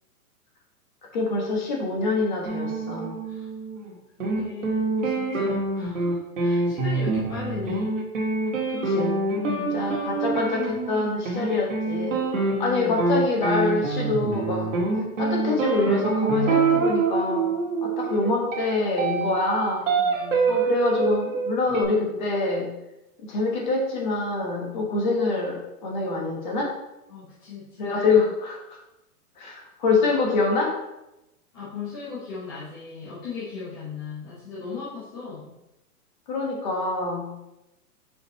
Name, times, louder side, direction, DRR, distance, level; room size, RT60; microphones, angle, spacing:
voice 1, 1.1-3.2 8.7-9.2 9.6-12.2 12.6-14.7 15.2-17.5 17.8-19.9 20.5-22.7 23.3-26.7 27.8-28.8 29.4-30.8 36.3-37.3, left 3 dB, 30° left, -1 dB, 1.4 m, -25 dB
sound 1, 2.4-3.9 4.2-21.8, right 3 dB, 55° right, 1.8 m, -26 dB
voice 2, 4.2-7.9 9.4-9.8 17.8-18.0 20.0-20.6 27.1-27.9 31.5-35.5, left 5 dB, 15° left, -10 dB, 0.8 m, -37 dB
6.8 x 4.4 x 4.1 m, 0.92 s
hypercardioid pair, 180°, 45 cm